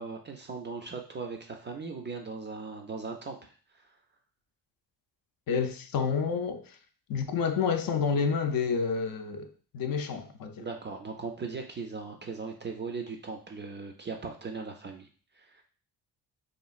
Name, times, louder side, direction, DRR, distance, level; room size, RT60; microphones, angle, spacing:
voice 1, 0.0-4.0 10.6-15.1 15.3-15.6, right 4 dB, 30° right, 0.3 m, -39 dB
voice 2, 5.5-6.8 7.1-10.7, left 6 dB, 55° left, 0.5 m, -29 dB
3.0 x 2.6 x 2.4 m
cardioid pair, 85°, 43 cm